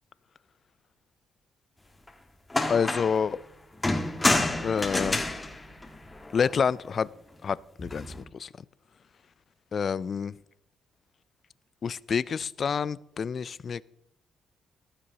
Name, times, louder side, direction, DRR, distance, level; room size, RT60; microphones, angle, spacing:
sound 1, 2.1-2.2 2.5-3.3 3.8-6.5 7.8-8.2, left 2 dB, 15° left, 1.5 m, -28 dB
voice 1, 2.7-3.4 4.6-5.2 6.3-7.1 7.4-8.5 9.7-10.3 11.8-13.8, left 6 dB, 50° left, 0.4 m, -28 dB
15.0 x 12.5 x 2.9 m
cardioid pair, 90°, 0 cm